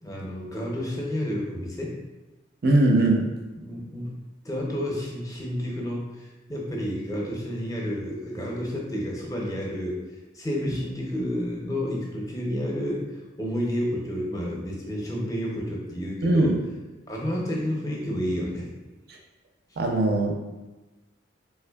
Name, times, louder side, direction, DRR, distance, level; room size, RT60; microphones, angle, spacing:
voice 1, 0.0-2.0 3.6-4.2 4.4-10.0 10.3-13.0 13.4-16.6 17.1-18.7, equal, 15° left, -2 dB, 0.5 m, -30 dB
voice 2, 2.6-3.2 16.2-16.6 19.1-19.2 19.8-20.3, right 2 dB, 50° right, 1 dB, 0.4 m, -20 dB
3.3 x 3.2 x 2.2 m, 1.1 s
head